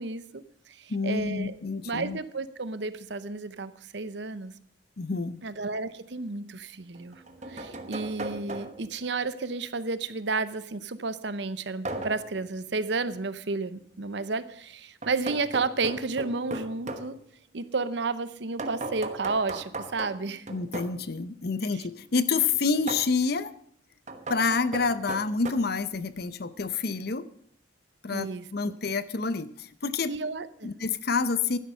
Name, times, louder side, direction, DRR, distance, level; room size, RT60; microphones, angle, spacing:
voice 1, 0.0-1.5 1.8-4.5 5.4-7.2 7.5-17.2 17.5-20.5 28.1-28.8 30.1-30.7, right 3 dB, 65° right, 14 dB, 0.8 m, -32 dB
voice 2, 0.9-2.2 5.0-5.4 20.5-23.5 24.3-27.3 28.0-30.1 30.6-31.6, left 4 dB, 55° left, 14 dB, 0.7 m, -28 dB
sound 1, 5.6-5.7 6.9-9.0 11.8-12.3 15.0-17.1 18.6-21.0 22.9-23.1 24.1-25.5, right 2 dB, 35° right, 1.1 m, -37 dB
12.0 x 10.5 x 5.6 m, 0.63 s
head